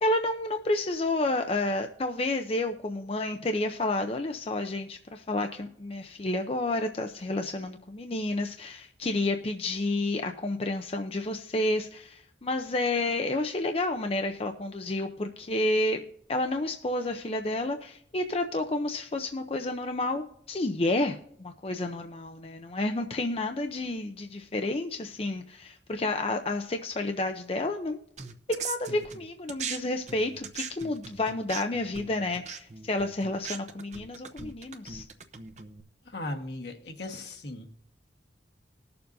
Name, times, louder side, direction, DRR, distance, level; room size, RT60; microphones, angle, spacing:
voice 1, 0.0-16.0 16.3-28.0 28.5-35.1, left 2 dB, 30° left, 6 dB, 0.5 m, -30 dB
sound 1, 28.2-29.8 30.1-35.8, right 6 dB, 40° right, 0.7 m, -40 dB
voice 2, 36.0-37.7, left 2 dB, 65° left, 2 dB, 1.4 m, -37 dB
20.5 x 6.9 x 2.6 m, 0.67 s
head